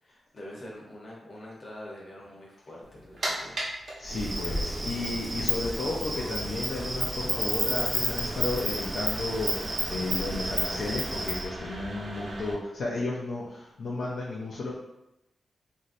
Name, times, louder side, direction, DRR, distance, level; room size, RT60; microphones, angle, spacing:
voice 1, 0.0-3.7, left 1 dB, 45° left, -4 dB, 0.9 m, -45 dB
sound 1, 2.8-12.5, right 1 dB, 60° right, 0.8 m, -40 dB
voice 2, 4.0-14.7, left 2 dB, 75° left, -5 dB, 0.5 m, -33 dB
Insect, 4.0-11.4, right 2 dB, 35° right, 0.5 m, -31 dB
3.0 x 2.6 x 2.6 m, 0.89 s
wide cardioid pair, 95°, 0 cm